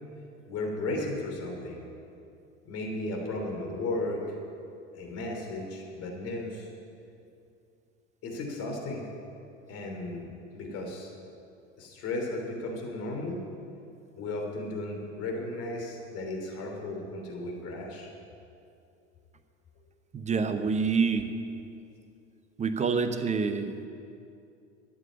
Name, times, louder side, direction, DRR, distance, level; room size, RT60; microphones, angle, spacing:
voice 1, 0.5-1.8 2.6-4.2 4.9-6.7 8.2-9.0 9.7-10.3 10.5-11.1 11.8-13.4 14.2-18.1, left 2 dB, 40° left, 1 dB, 3.4 m, -35 dB
voice 2, 20.1-21.3 22.6-23.9, right 5 dB, 20° right, 9 dB, 0.9 m, -27 dB
12.5 x 8.8 x 8.6 m, 2.6 s
figure-of-eight pair, 75°, 38 cm